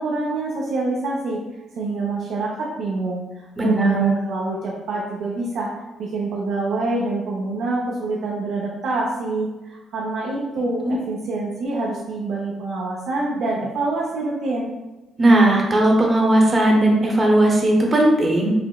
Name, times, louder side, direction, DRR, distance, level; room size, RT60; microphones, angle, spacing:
voice 1, 0.0-1.4 1.8-5.7 6.0-14.7, right 2 dB, 75° right, -4 dB, 0.6 m, -26 dB
voice 2, 3.6-4.1 10.9-11.0 15.2-18.5, right 1 dB, 30° right, 0 dB, 0.8 m, -17 dB
5.7 x 2.0 x 2.3 m, 1.1 s
cardioid pair, 90°, 0 cm